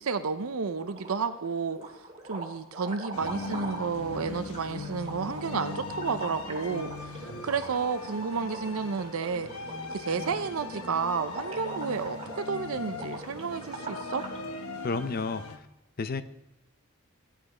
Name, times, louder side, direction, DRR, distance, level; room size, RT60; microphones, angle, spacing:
voice 1, 0.0-1.8 2.2-9.5 9.9-14.2, right 5 dB, 75° right, 10 dB, 0.6 m, -31 dB
sound 1, 0.8-1.4 1.7-14.4, right 2 dB, 30° right, 2.0 m, -43 dB
sound 2, 3.1-15.6, left 3 dB, 90° left, 1.1 m, -40 dB
voice 2, 14.8-15.7 16.0-16.2, left 4 dB, 45° left, 11 dB, 0.5 m, -31 dB
15.0 x 9.0 x 4.9 m, 0.87 s
head